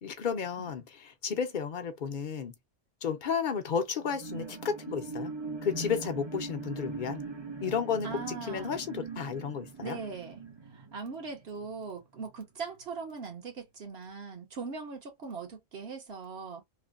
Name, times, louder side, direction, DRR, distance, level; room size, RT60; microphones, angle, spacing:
voice 1, 0.0-2.5 3.0-5.3 5.6-7.2 7.6-10.0, left 6 dB, 50° left, 0.7 m, -33 dB
sound 1, 4.0-11.8 12.3-12.4, right 3 dB, 30° right, 0.6 m, -41 dB
voice 2, 8.0-8.8 9.8-10.4 10.7-16.6, right 5 dB, 60° right, 1.2 m, -40 dB
3.1 x 2.1 x 2.4 m
omnidirectional pair, 1.2 m